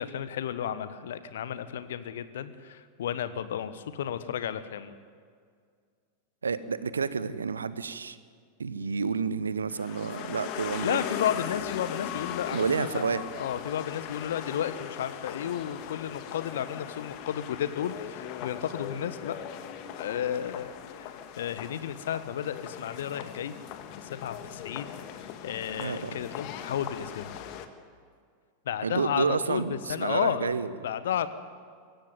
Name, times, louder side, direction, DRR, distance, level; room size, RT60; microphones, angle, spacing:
voice 1, 0.0-4.9 10.8-19.4 20.0-23.5 24.0-27.3 28.6-30.5 30.8-31.3, left 9 dB, 60° left, 13 dB, 1.3 m, -33 dB
voice 2, 6.4-8.2 8.6-11.0 12.5-13.2 25.8-26.2 28.8-30.7, right 5 dB, 75° right, 15 dB, 1.0 m, -29 dB
sound 1, 9.7-27.7, left 9 dB, 45° left, 1.7 m, -39 dB
24.0 x 16.0 x 9.3 m, 2.1 s
figure-of-eight pair, 90°, 0 cm